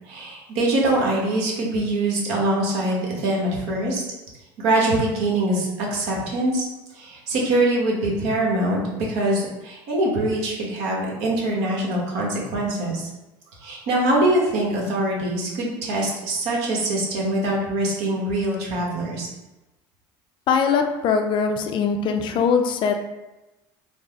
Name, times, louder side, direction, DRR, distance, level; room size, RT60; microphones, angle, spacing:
voice 1, 0.1-4.0 4.6-6.7 6.9-13.1 13.6-19.3, right 1 dB, 70° right, -3 dB, 1.2 m, -23 dB
voice 2, 20.5-23.0, left 6 dB, 45° left, 5 dB, 0.5 m, -21 dB
3.9 x 2.0 x 3.6 m, 1.0 s
supercardioid pair, 110°, 11 cm